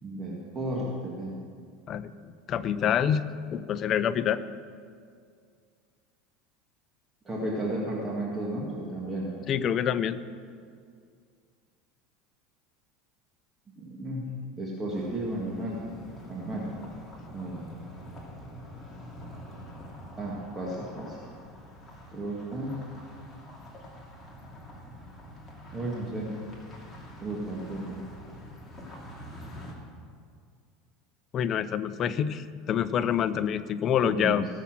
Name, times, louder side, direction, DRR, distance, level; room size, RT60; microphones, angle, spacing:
voice 1, 0.0-1.4 7.3-9.3 13.8-14.2 14.6-15.8 16.3-16.7 17.3-17.7 20.1-21.2 22.1-22.8 25.7-26.3 27.2-28.0 34.0-34.5, right 1 dB, 20° right, -4 dB, 1.8 m, -33 dB
voice 2, 1.9-3.2 3.5-4.4 9.5-10.2 31.3-34.5, left 9 dB, 35° left, 12 dB, 0.5 m, -27 dB
sound 1, 14.9-29.7, equal, 10° left, 2.4 m, -46 dB
18.5 x 7.1 x 6.1 m, 2.1 s
supercardioid pair, 145°, 0 cm